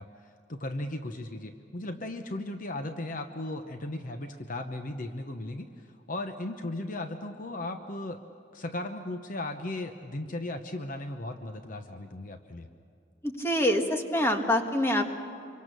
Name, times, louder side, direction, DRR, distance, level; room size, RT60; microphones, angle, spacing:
voice 1, 0.0-8.2 8.5-12.7, left 1 dB, 45° left, 7 dB, 0.9 m, -36 dB
voice 2, 13.2-15.1, left 1 dB, 15° left, 4 dB, 1.6 m, -26 dB
26.0 x 23.5 x 6.7 m, 2.6 s
head